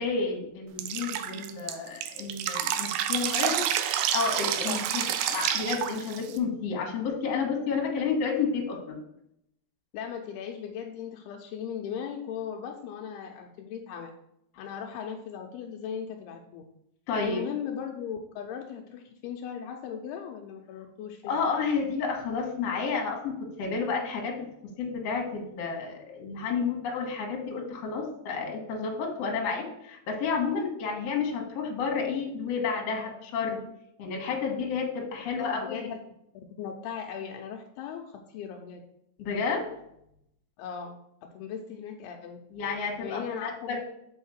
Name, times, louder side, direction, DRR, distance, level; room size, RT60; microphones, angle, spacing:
voice 1, 0.0-3.6 4.1-9.0 17.1-17.4 21.2-24.5 24.8-33.6 34.0-35.9 39.2-39.6 42.5-43.8, left 5 dB, 50° left, 0 dB, 2.2 m, -31 dB
Drip, 0.8-6.4, right 10 dB, 80° right, 2.3 m, -29 dB
voice 2, 9.9-14.1 14.6-16.6 17.2-21.3 35.4-36.0 36.6-38.8 40.6-41.0 41.3-42.4 43.0-43.8, left 7 dB, 80° left, 3 dB, 2.6 m, -37 dB
6.5 x 5.1 x 6.2 m, 0.76 s
omnidirectional pair, 4.7 m